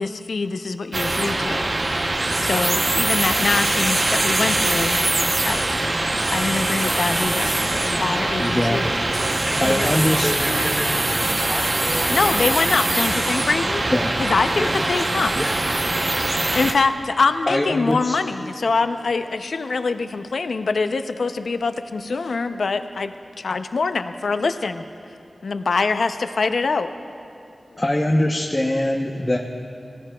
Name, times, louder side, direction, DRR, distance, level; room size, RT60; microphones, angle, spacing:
voice 1, 0.0-2.1 2.4-5.8 6.3-8.9 9.6-9.9 12.1-13.8 14.2-15.3 16.5-24.8 25.4-26.9, left 4 dB, 80° left, 9 dB, 0.4 m, -24 dB
sound 1, 0.9-16.7, right 2 dB, 45° right, 0.7 m, -22 dB
voice 2, 8.4-9.0 9.6-10.3 13.9-14.1 17.5-18.1 27.8-29.4, left 1 dB, 25° left, -1 dB, 0.7 m, -22 dB
voice 3, 9.5-12.4 14.5-14.8 15.3-15.6, equal, 5° right, 0 dB, 1.7 m, -30 dB
18.0 x 16.5 x 2.2 m, 2.7 s
wide cardioid pair, 75°, 0 cm